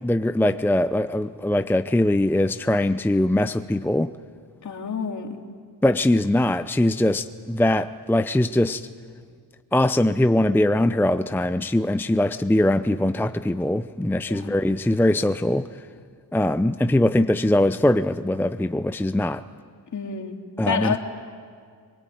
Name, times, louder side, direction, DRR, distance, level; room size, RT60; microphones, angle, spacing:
voice 1, 0.0-4.1 5.8-8.9 9.7-15.7 16.3-19.4 20.6-21.0, left 1 dB, 5° left, 0.7 m, -21 dB
voice 2, 4.6-5.4 14.3-14.6 19.9-20.4 20.7-21.0, left 5 dB, 45° left, 3.1 m, -28 dB
23.5 x 21.5 x 9.4 m
cardioid pair, 70°, 40 cm